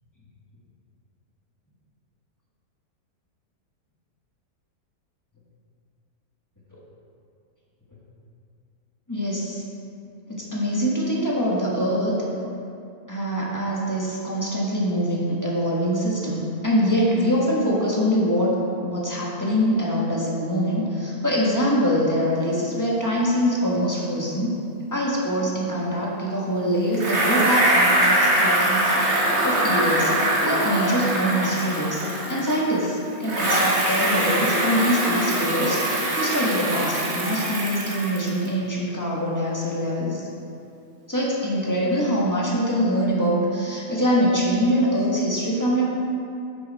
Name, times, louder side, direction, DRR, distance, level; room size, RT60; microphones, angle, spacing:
voice 1, 9.1-9.6 10.3-12.1 13.1-18.6 18.8-24.6 24.9-29.1 29.4-30.1 30.4-40.2 41.1-45.9, equal, 10° left, -5 dB, 1.3 m, -24 dB
Bicycle, 26.9-32.8 33.2-38.5, right 1 dB, 45° right, 1.6 m, -23 dB
8.8 x 6.3 x 4.2 m, 2.6 s
omnidirectional pair, 1.7 m